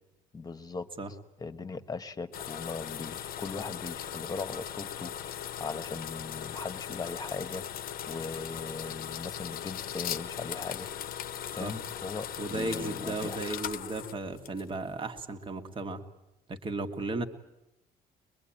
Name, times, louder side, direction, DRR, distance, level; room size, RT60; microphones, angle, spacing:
voice 1, 0.3-0.9 1.4-10.9 11.5-13.4, left 4 dB, 20° left, 10 dB, 1.4 m, -39 dB
sound 1, 2.3-14.9, left 10 dB, 60° left, 0.9 m, -39 dB
voice 2, 12.4-16.0 16.5-17.2, right 2 dB, 30° right, 6 dB, 1.8 m, -35 dB
23.0 x 22.0 x 8.9 m, 0.92 s
cardioid pair, 110°, 17 cm